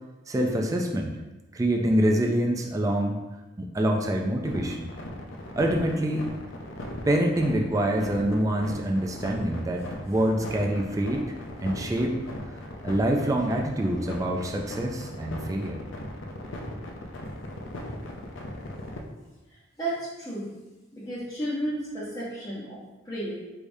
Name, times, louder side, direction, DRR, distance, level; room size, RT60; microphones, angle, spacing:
voice 1, 0.3-1.2 1.5-3.2 3.6-4.9 5.6-6.3 7.1-11.2 11.6-12.2 12.8-15.8, right 1 dB, 15° right, 1 dB, 0.3 m, -26 dB
sound 1, 4.5-19.0, left 1 dB, 75° left, 0.5 m, -38 dB
voice 2, 19.8-20.5 20.9-23.4, right 1 dB, 15° left, -10 dB, 0.9 m, -33 dB
4.8 x 3.4 x 2.6 m, 1.1 s
head